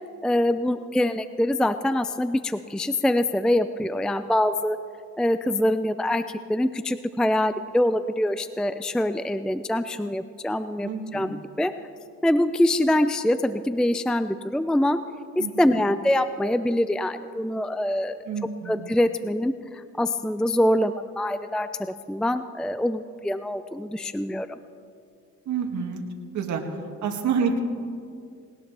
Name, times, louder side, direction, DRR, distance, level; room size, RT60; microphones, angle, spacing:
voice 1, 0.2-4.8 5.2-6.2 6.5-11.7 12.2-15.0 15.4-18.2 18.7-24.5, left 1 dB, 5° left, 11 dB, 0.4 m, -24 dB
voice 2, 10.8-11.3 15.4-15.5 18.3-18.9 25.5-26.0 26.3-26.6 27.0-27.6, right 6 dB, 70° right, 3 dB, 2.2 m, -28 dB
20.0 x 19.0 x 3.4 m, 2.3 s
cardioid pair, 90°, 30 cm